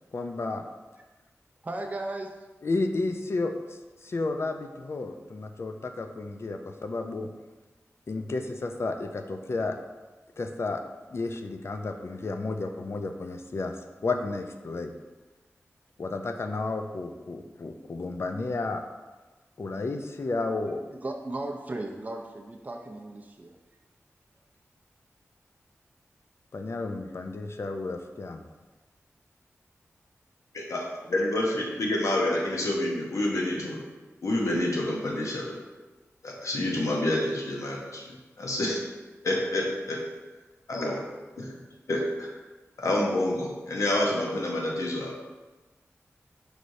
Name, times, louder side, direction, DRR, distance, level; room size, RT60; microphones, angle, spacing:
voice 1, 0.1-0.6 2.6-7.3 8.1-9.8 10.4-10.8 11.1-13.8 14.0-14.9 16.0-18.8 19.6-20.8 26.5-28.4, left 3 dB, 55° left, 6 dB, 0.4 m, -32 dB
voice 2, 1.6-2.3 20.9-23.6, right 2 dB, 30° right, 2 dB, 0.4 m, -36 dB
voice 3, 30.5-33.8 34.2-35.5 36.2-38.1 38.4-38.8 39.2-40.0 40.7-41.0 41.4-41.5 41.9-42.3 42.8-45.2, left 1 dB, 75° left, -1 dB, 0.7 m, -28 dB
5.0 x 3.2 x 2.6 m, 1.2 s
cardioid pair, 55°, 5 cm